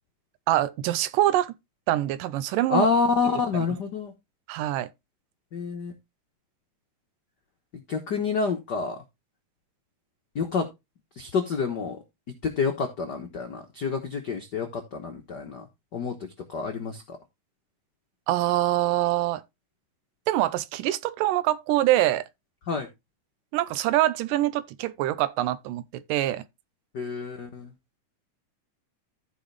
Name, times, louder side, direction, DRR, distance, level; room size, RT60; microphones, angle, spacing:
voice 1, 0.5-1.5 1.9-2.9 3.5-3.6 4.5-4.9 18.3-19.4 20.3-22.3 23.5-26.5, right 14 dB, 90° right, 2.3 m, -24 dB
voice 2, 2.7-4.1 5.5-5.9 7.7-9.0 10.3-10.7 11.2-12.0 12.4-16.2 16.5-17.2 22.7-22.9 26.9-27.7, left 5 dB, 75° left, 0.9 m, -28 dB
14.5 x 5.2 x 3.3 m
omnidirectional pair, 3.8 m